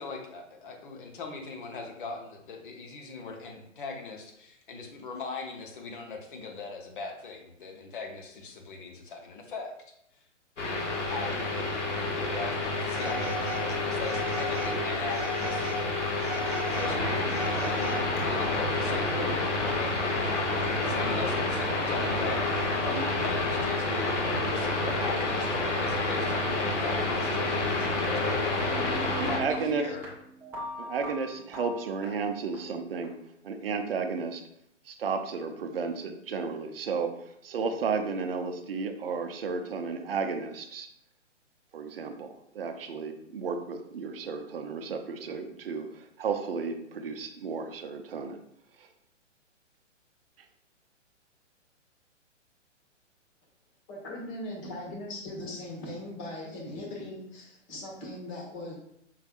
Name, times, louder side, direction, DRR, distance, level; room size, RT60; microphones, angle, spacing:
voice 1, 0.0-9.7 10.6-11.5 12.0-15.7 16.1-16.2 16.7-28.6 28.9-30.1, left 4 dB, 45° left, 2 dB, 0.9 m, -40 dB
sound 1, 10.6-29.4, left 2 dB, 70° left, 1.3 m, -29 dB
Telephone, 12.9-13.6 14.0-14.7 15.1-15.8 16.2-18.2, right 2 dB, 25° right, 1.4 m, -38 dB
sound 2, 28.0-33.0, equal, 5° right, 0.6 m, -41 dB
voice 2, 29.2-29.9 30.8-33.1 33.4-34.4 34.9-37.2 37.4-40.9 41.7-48.4 48.8-48.9, right 5 dB, 50° right, 6 dB, 0.6 m, -33 dB
voice 3, 53.9-58.7, left 1 dB, 30° left, -2 dB, 1.3 m, -39 dB
5.4 x 3.3 x 2.4 m, 0.75 s
figure-of-eight pair, 120°, 37 cm